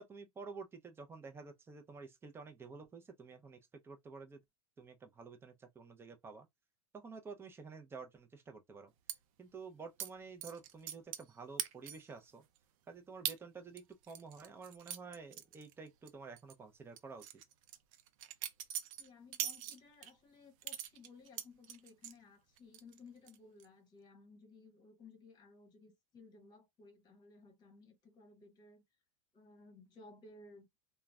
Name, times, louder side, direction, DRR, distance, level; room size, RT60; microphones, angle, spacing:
voice 1, 0.0-4.4 4.8-6.5 6.9-8.9 9.4-12.4 12.9-17.2, right 4 dB, 15° right, 0.5 m, -50 dB
sound 1, 9.1-9.2 10.0-10.1 10.4-11.3 11.6-12.1 12.5-12.6 13.2-13.4 13.8-16.1 16.4-16.5 17.0-20.1 20.6-22.2 22.6-23.0 23.3-23.6, right 11 dB, 65° right, 0.5 m, -42 dB
voice 2, 19.0-28.8 29.3-30.7, left 3 dB, 20° left, 1.2 m, -59 dB
2.3 x 2.1 x 3.4 m
supercardioid pair, 130°, 18 cm